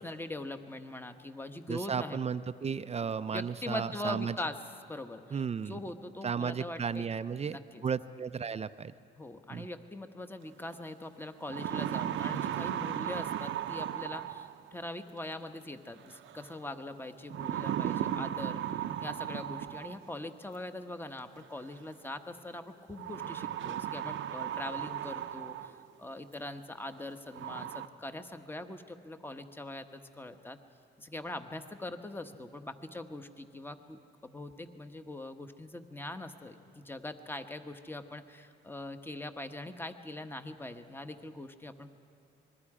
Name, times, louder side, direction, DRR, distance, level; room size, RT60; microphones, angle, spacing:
voice 1, 0.0-2.2 3.3-4.6 4.9-7.1 7.4-7.8 9.2-18.6 19.0-30.6 31.0-41.9, left 1 dB, 10° left, 8 dB, 1.1 m, -42 dB
voice 2, 1.7-4.4 5.3-5.8 6.2-8.9 9.5-9.7, right 6 dB, 30° right, 13 dB, 0.5 m, -34 dB
sound 1, 10.7-10.8 11.3-14.7 16.1-16.5 17.3-20.1 21.4-21.5 23.0-25.8 26.3-26.4 27.0-27.1 27.3-27.9, right 11 dB, 75° right, 0.7 m, -36 dB
26.0 x 21.0 x 4.9 m, 2.7 s
cardioid pair, 90°, 20 cm